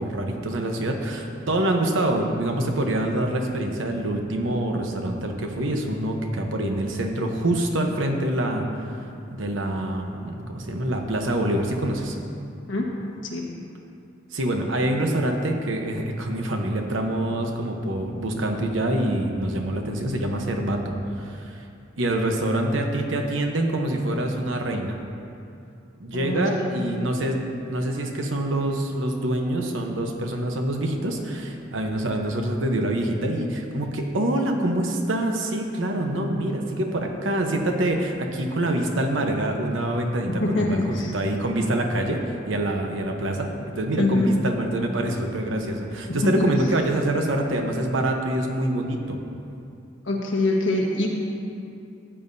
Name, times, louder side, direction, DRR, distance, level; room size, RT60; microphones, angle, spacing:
voice 1, 0.0-8.7 9.3-12.2 14.3-21.6 22.0-25.0 26.0-49.2, right 1 dB, 75° right, 3 dB, 1.0 m, -25 dB
voice 2, 26.1-26.8 40.3-41.1 44.0-44.3 46.1-46.5 50.0-51.1, left 2 dB, 70° left, -2 dB, 1.5 m, -24 dB
14.0 x 8.8 x 2.7 m, 2.5 s
head